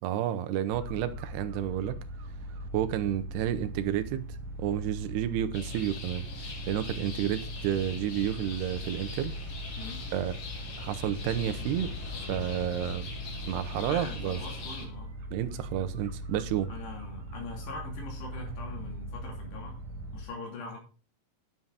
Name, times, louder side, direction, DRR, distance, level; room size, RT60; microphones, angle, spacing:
voice 1, 0.0-2.0 2.7-9.4 10.1-10.4 10.8-11.9 12.3-13.1 13.5-14.4 15.3-16.7, right 11 dB, 85° right, 2.8 m, -31 dB
sound 1, 0.7-20.2, right 1 dB, 55° right, 2.7 m, -40 dB
sound 2, 5.5-14.9, left 5 dB, 50° left, 2.1 m, -42 dB
voice 2, 9.8-10.1 13.7-15.2 16.7-19.8 20.1-20.8, left 3 dB, 80° left, 5.1 m, -42 dB
11.0 x 7.4 x 3.9 m
omnidirectional pair, 4.8 m